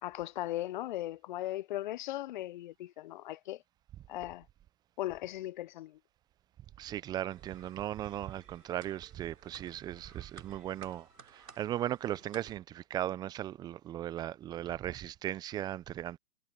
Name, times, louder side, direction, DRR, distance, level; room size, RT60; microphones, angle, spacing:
voice 1, 0.0-3.6 4.1-4.4 5.0-6.0, left 15 dB, 30° left, 0.9 m, -38 dB
voice 2, 6.8-16.2, right 12 dB, 10° right, 0.8 m, -37 dB
sound 1, 7.3-12.6, right 5 dB, 75° right, 4.1 m, -57 dB
figure-of-eight pair, 130°, 47 cm